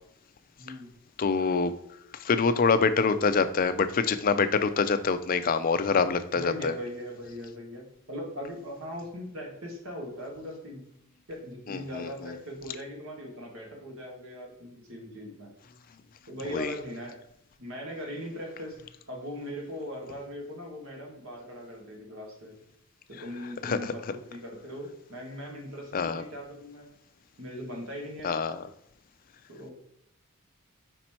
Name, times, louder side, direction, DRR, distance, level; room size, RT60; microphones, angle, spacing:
voice 1, 0.6-0.9 6.3-10.8 11.3-15.5 16.3-17.2 17.6-18.8 19.1-22.6 23.1-26.9 27.4-28.3 29.5-29.7, equal, 65° right, 0 dB, 1.7 m, -40 dB
voice 2, 1.2-1.7 2.2-6.7 11.7-12.3 16.5-16.7 23.6-23.8 25.9-26.2 28.2-28.6, left 5 dB, 40° left, 11 dB, 0.4 m, -25 dB
5.2 x 4.3 x 4.3 m, 0.75 s
head